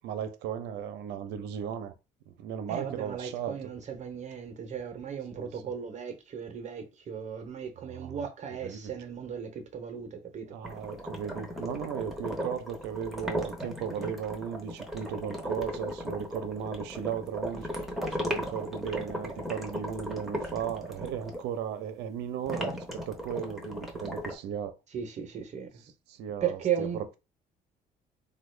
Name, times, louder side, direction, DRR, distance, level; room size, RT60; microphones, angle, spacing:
voice 1, 0.0-1.9 2.3-3.7 5.3-5.4 7.8-8.2 8.6-8.9 10.5-17.7 18.1-24.7 26.1-27.2, right 8 dB, 85° right, 0.6 m, -36 dB
voice 2, 2.7-10.5 24.9-25.8 26.4-27.0, right 8 dB, 45° right, 0.7 m, -36 dB
sound 1, 10.6-21.4 22.5-24.3, equal, ahead, 0.8 m, -36 dB
3.5 x 2.2 x 3.2 m
cardioid pair, 110°, 17 cm